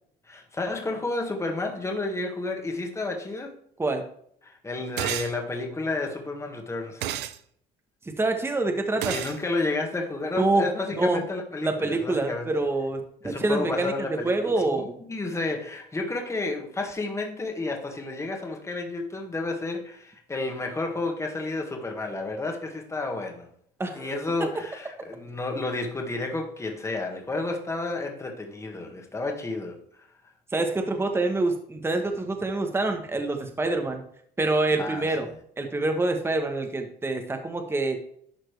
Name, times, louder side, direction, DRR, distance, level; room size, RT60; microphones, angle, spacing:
voice 1, 0.3-3.5 4.4-7.1 9.0-12.6 13.2-23.5 24.0-30.1 34.7-35.3, left 2 dB, 15° left, 1.7 m, -31 dB
sound 1, 5.0-5.3 7.0-7.4 9.0-9.4, right 12 dB, 85° right, 0.6 m, -30 dB
voice 2, 8.1-9.2 10.3-10.6 10.9-11.2 11.6-13.9 14.2-15.0 23.8-24.1 30.5-34.0 34.4-35.3 35.6-38.0, right 2 dB, 15° right, 1.1 m, -26 dB
11.5 x 4.3 x 3.3 m
cardioid pair, 110°, 17 cm